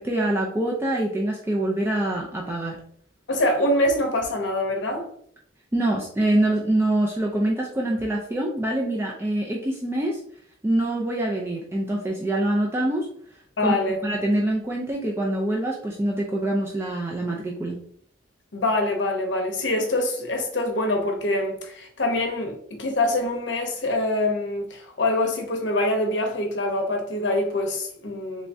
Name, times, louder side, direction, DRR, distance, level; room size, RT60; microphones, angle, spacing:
voice 1, 0.0-2.8 5.7-10.2 10.6-13.1 13.6-13.7 14.0-17.8, right 1 dB, 15° right, 0.4 m, -25 dB
voice 2, 3.3-5.1 13.6-14.0 18.5-28.5, left 1 dB, 70° left, 0.7 m, -25 dB
3.5 x 3.2 x 2.6 m
head